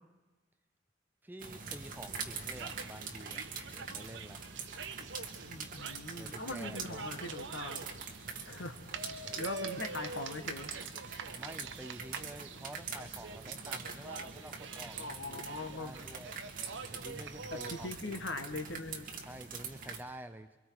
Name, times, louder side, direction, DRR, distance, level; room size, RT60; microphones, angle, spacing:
voice 1, 1.2-3.4 3.7-4.4 6.2-7.2 9.2-9.5 11.3-16.4 16.9-18.3 19.2-20.7, right 1 dB, 10° right, 9 dB, 0.7 m, -49 dB
sound 1, 1.4-20.0, right 5 dB, 45° right, 2.1 m, -44 dB
sound 2, 2.5-18.0, right 4 dB, 70° right, 1.0 m, -46 dB
voice 2, 5.4-7.8 8.4-8.8 9.4-10.7 14.9-16.0 17.5-19.1, left 2 dB, 65° left, 6 dB, 1.6 m, -41 dB
28.5 x 23.5 x 4.8 m, 1.2 s
head